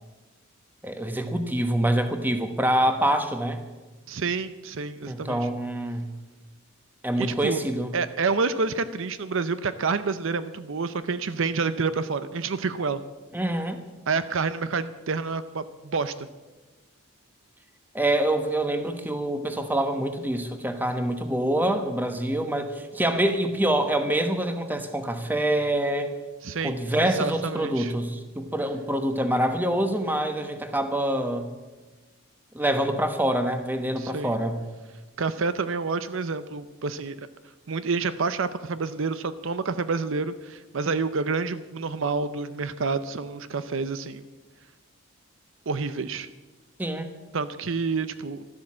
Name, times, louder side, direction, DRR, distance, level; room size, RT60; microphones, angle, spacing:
voice 1, 0.8-3.6 5.0-6.1 7.0-7.9 13.3-13.8 17.9-26.1 26.6-31.5 32.5-34.6 46.8-47.1, right 1 dB, 10° right, 7 dB, 1.1 m, -26 dB
voice 2, 4.1-5.5 7.2-7.6 7.9-13.0 14.1-16.3 26.4-27.9 34.0-34.4 35.2-37.2 37.7-44.2 45.7-46.3 47.3-48.4, right 4 dB, 65° right, 13 dB, 0.6 m, -28 dB
13.0 x 12.0 x 7.4 m, 1.2 s
head